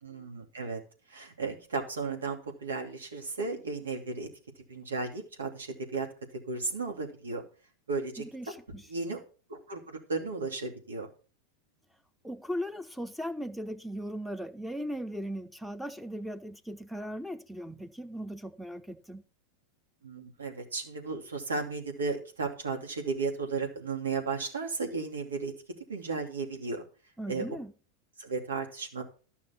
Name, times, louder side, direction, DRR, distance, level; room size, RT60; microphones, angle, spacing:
voice 1, 0.0-0.8 1.1-4.3 4.7-6.1 6.5-7.4 7.9-8.2 8.9-9.2 9.5-11.1 20.0-25.5 25.9-26.8 27.3-27.6 28.2-29.0, right 4 dB, 85° right, 2.6 m, -34 dB
voice 2, 8.2-8.9 12.2-19.2 27.2-27.7, equal, ahead, 0.9 m, -38 dB
12.5 x 5.9 x 5.8 m
hypercardioid pair, 95°, 0 cm